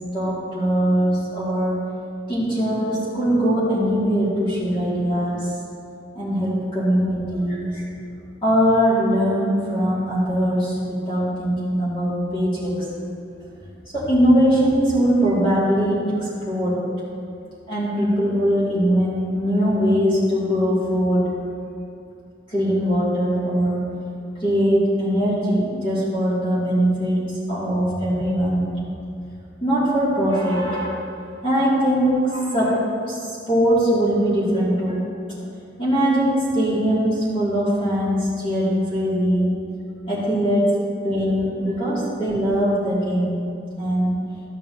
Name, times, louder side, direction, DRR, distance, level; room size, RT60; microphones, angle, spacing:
voice 1, 0.1-1.8 2.3-5.5 6.1-7.8 8.4-13.0 13.9-16.8 17.7-21.3 22.5-23.9 24.4-28.7 29.6-31.1 31.4-33.2 33.5-35.0 35.8-39.6 40.1-40.7 41.0-43.4 43.8-44.2, equal, 30° left, -10 dB, 2.4 m, -21 dB
13.5 x 9.1 x 2.9 m, 2.5 s
head